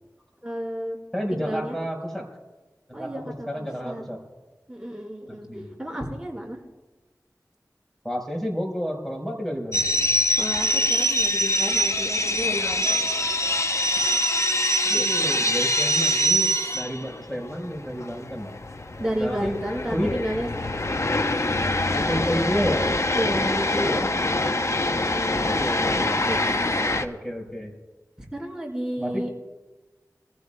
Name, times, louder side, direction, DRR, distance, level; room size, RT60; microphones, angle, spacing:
voice 1, 0.4-1.0 1.3-1.8 2.9-4.1 4.7-5.5 5.8-6.6 10.4-13.2 14.9-15.5 19.0-21.0 23.1-24.2 26.3-26.5 28.3-29.3, equal, 10° right, -3 dB, 4.2 m, -32 dB
voice 2, 1.1-2.3 3.0-3.1 3.5-4.2 5.3-5.8 8.0-9.9 14.8-18.6 19.2-19.6 19.9-20.1 22.1-22.8 25.0-27.7 29.0-29.2, equal, 5° left, 1 dB, 4.5 m, -31 dB
sound 1, 9.7-27.0, left 1 dB, 50° left, 0.7 m, -24 dB
24.0 x 15.0 x 2.2 m, 1.2 s
wide cardioid pair, 50°, 6 cm